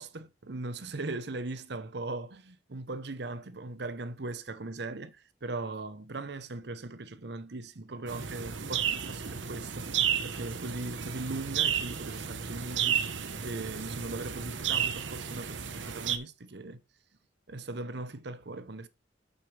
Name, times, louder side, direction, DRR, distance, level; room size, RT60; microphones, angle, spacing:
voice 1, 0.0-9.9 10.2-13.0 13.4-16.8 17.5-18.9, right 2 dB, 60° right, 0.9 m, -39 dB
sound 1, 8.1-16.2, right 8 dB, 85° right, 1.0 m, -32 dB
8.3 x 7.9 x 3.3 m
head